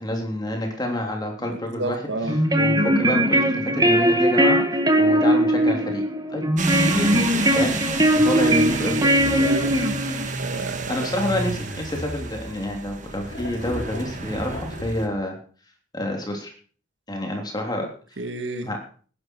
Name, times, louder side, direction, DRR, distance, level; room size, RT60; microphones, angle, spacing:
voice 1, 0.0-2.0 2.6-4.6 5.0-6.0 6.3-7.8 8.1-9.0 10.9-15.4 15.9-16.5 17.1-17.9 18.6-18.8, left 1 dB, 20° left, 3.3 m, -28 dB
voice 2, 1.5-2.4 9.0-9.7 10.3-11.3 17.8-17.9 18.2-18.7, right 2 dB, 65° right, 1.8 m, -31 dB
sound 1, 2.2-10.3, right 1 dB, 20° right, 1.6 m, -20 dB
sound 2, 6.6-15.1, right 3 dB, 40° right, 1.6 m, -30 dB
sound 3, 9.0-10.4 11.2-12.7 13.2-15.2, left 1 dB, 70° left, 3.9 m, -39 dB
18.0 x 11.0 x 4.7 m
head